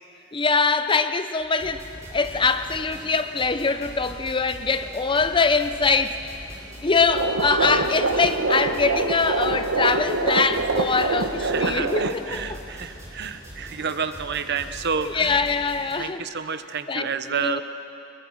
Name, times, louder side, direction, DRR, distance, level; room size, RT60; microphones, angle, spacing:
voice 1, 0.3-6.3 6.8-12.6 15.0-16.2 16.9-17.6, left 4 dB, 25° left, 10 dB, 0.7 m, -23 dB
sound 1, 1.6-15.9, equal, 15° right, 5.7 m, -42 dB
sound 2, 7.1-12.1, right 3 dB, 75° right, 1.1 m, -25 dB
voice 2, 11.4-15.5 16.0-17.6, right 6 dB, 55° right, 10 dB, 0.8 m, -30 dB
24.0 x 21.5 x 6.3 m, 2.9 s
head